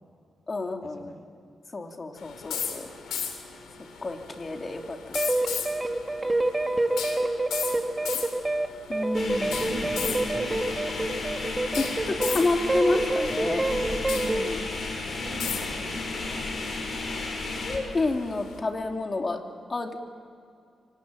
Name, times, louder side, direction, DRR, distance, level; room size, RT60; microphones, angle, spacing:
voice 1, 0.5-1.1 1.7-2.9 4.0-5.2 8.9-9.8 11.8-13.6 14.1-14.6 17.6-19.4 19.7-20.0, left 2 dB, 40° left, 4 dB, 2.8 m, -29 dB
sound 1, 2.2-18.6, left 7 dB, 85° left, 3.0 m, -38 dB
sound 2, 5.1-12.4 12.7-14.5, right 2 dB, 25° right, 1.9 m, -27 dB
sound 3, 9.1-17.8, left 3 dB, 60° left, 5.9 m, -33 dB
voice 2, 9.7-10.9 13.3-13.8 15.2-16.4, right 4 dB, 65° right, 5 dB, 3.8 m, -41 dB
26.0 x 18.5 x 9.0 m, 2.4 s
supercardioid pair, 50°, 0 cm